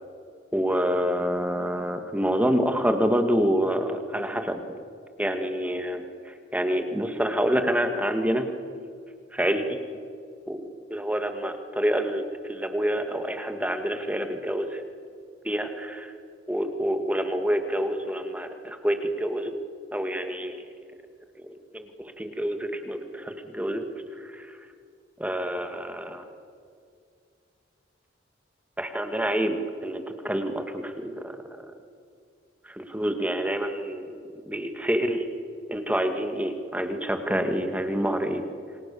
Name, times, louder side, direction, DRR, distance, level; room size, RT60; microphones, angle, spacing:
voice 1, 0.5-4.6 5.2-8.5 9.3-9.8 10.5-14.8 15.4-16.1 16.5-19.5 19.9-20.6 21.4-23.9 24.2-24.6 25.2-26.3 28.8-31.4 32.7-34.2 34.4-35.3 35.7-38.4, equal, 10° right, 6 dB, 1.9 m, -27 dB
28.5 x 25.0 x 7.0 m, 2.3 s
head